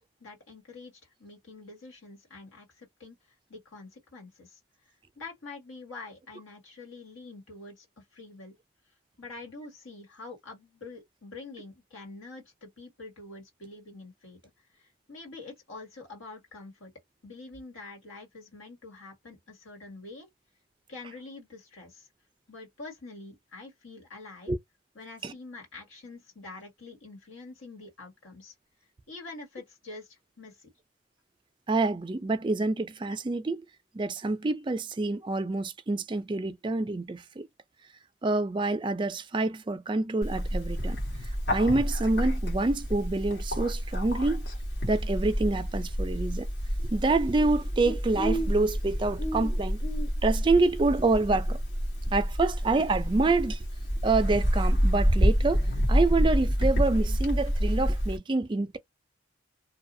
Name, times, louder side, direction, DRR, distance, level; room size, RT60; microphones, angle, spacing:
voice 1, 0.0-3.2 3.5-4.6 5.1-7.9 8.1-8.6 9.2-16.9 17.2-20.3 20.9-22.1 22.5-24.5 24.9-28.5 29.1-30.7, left 3 dB, 85° left, 1.8 m, -46 dB
voice 2, 31.7-33.6 33.9-37.5 38.2-41.0 41.5-44.5 44.8-46.5 46.9-49.8 50.2-51.6 52.1-53.6 54.0-58.8, right 3 dB, 25° right, 0.3 m, -27 dB
Bird, 40.2-58.2, equal, 60° left, 1.3 m, -28 dB
2.8 x 2.3 x 2.6 m
head